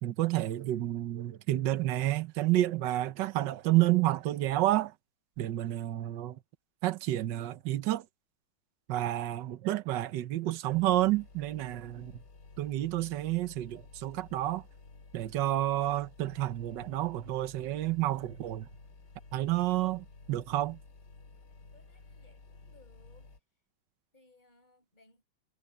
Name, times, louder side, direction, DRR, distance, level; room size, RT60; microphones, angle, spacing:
voice 1, 0.0-4.9 5.4-6.4 6.8-8.1 8.9-12.2 12.6-14.6 15.1-18.7 19.3-20.8, right 15 dB, 65° right, 1.5 m, -30 dB
sound 1, 10.7-23.4, left 3 dB, 55° left, 3.3 m, -53 dB
voice 2, 21.7-23.3 24.1-25.2, left 3 dB, 20° left, 7.7 m, -63 dB
omnidirectional pair, 2.2 m